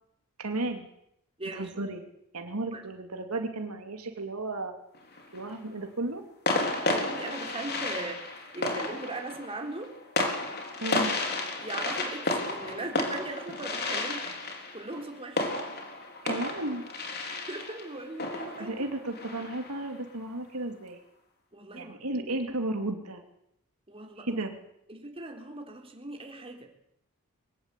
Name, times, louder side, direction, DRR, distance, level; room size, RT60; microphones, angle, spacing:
voice 1, 0.4-0.9 1.5-2.0 2.3-4.7 5.3-6.2 10.8-11.2 16.2-16.8 18.6-21.0 21.7-23.2 24.2-24.5, right 2 dB, 85° right, 5 dB, 2.7 m, -34 dB
voice 2, 1.4-1.9 2.7-2.8 6.6-10.0 11.6-14.3 14.7-15.5 17.3-18.7 21.5-22.0 23.9-24.4 24.9-26.7, right 2 dB, 25° right, 2 dB, 3.9 m, -39 dB
sound 1, 4.9-5.5 6.5-19.9, left 2 dB, 50° left, 4.0 m, -32 dB
23.0 x 18.0 x 8.4 m, 0.76 s
head